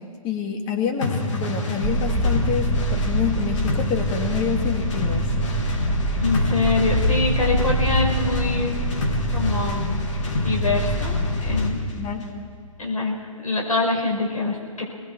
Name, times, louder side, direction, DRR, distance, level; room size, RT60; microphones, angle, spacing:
voice 1, 0.2-5.3 11.9-12.3, left 6 dB, 25° left, 2 dB, 2.7 m, -27 dB
sound 1, 1.0-11.8, left 2 dB, 55° left, 3.3 m, -27 dB
sound 2, 1.8-11.6, right 1 dB, ahead, 3.1 m, -26 dB
voice 2, 6.2-8.7 9.3-10.0 10.3-11.8 12.8-14.8, left 3 dB, 85° left, -2 dB, 5.4 m, -25 dB
27.5 x 20.5 x 4.8 m, 2.1 s
figure-of-eight pair, 125°, 18 cm